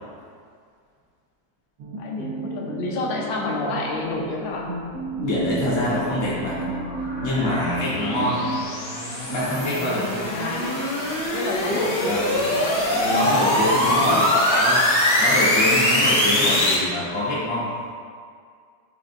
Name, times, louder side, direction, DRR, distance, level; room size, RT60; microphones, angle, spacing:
sound 1, 1.8-8.6, right 2 dB, 80° right, 1.4 m, -32 dB
voice 1, 1.9-4.7 10.3-10.8 11.3-14.7, left 2 dB, 80° left, -1 dB, 2.2 m, -30 dB
voice 2, 5.1-6.7 7.2-8.5 9.3-10.3 12.0-12.3 12.9-14.3 14.6-14.8 15.2-17.7, left 1 dB, 25° left, -8 dB, 0.5 m, -25 dB
sound 2, 5.6-16.7, left 1 dB, 65° left, 0.9 m, -23 dB
10.5 x 5.1 x 2.3 m, 2.1 s
omnidirectional pair, 3.4 m